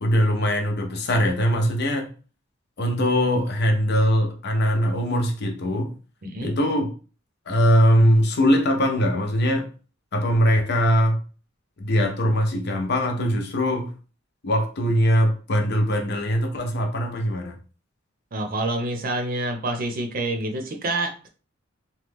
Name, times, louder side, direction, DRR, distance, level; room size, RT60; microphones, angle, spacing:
voice 1, 0.0-2.1 2.8-5.9 6.4-6.9 7.5-9.7 10.1-11.2 11.8-13.9 14.4-17.5, equal, 55° left, 0.7 m, -21 dB
voice 2, 18.3-21.3, right 2 dB, 45° right, 0.6 m, -27 dB
3.0 x 2.3 x 3.4 m
head